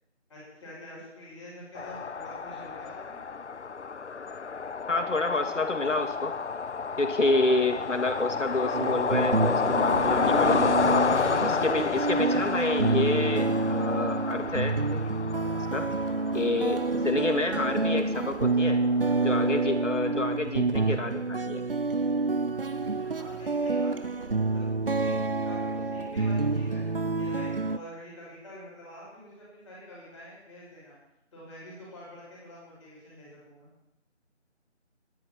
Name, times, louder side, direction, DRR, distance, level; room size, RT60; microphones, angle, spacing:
voice 1, 0.3-3.2 22.8-24.7 25.0-25.1 25.4-26.8 27.1-31.0 31.3-33.7, equal, 5° left, -14 dB, 4.9 m, -47 dB
sound 1, 1.8-20.3, left 5 dB, 70° left, 0.7 m, -30 dB
voice 2, 4.9-6.3 7.0-10.7 11.4-15.0 15.7-15.9 16.3-18.8 19.2-21.6, left 2 dB, 85° left, 5 dB, 2.3 m, -28 dB
sound 2, 8.7-27.8, right 3 dB, 50° right, 0.5 m, -28 dB
20.0 x 11.0 x 4.6 m, 0.86 s
figure-of-eight pair, 170°, 36 cm